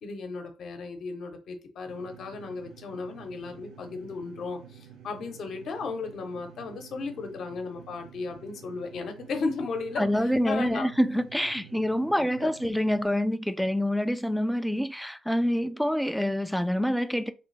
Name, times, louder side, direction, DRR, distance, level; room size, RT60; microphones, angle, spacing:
voice 1, 0.0-10.9 12.1-12.5, left 4 dB, 65° left, 0.8 m, -35 dB
sound 1, 1.9-13.0, right 8 dB, 90° right, 0.6 m, -50 dB
voice 2, 10.0-17.3, equal, ahead, 0.3 m, -26 dB
3.2 x 2.5 x 3.2 m
cardioid pair, 90°, 0 cm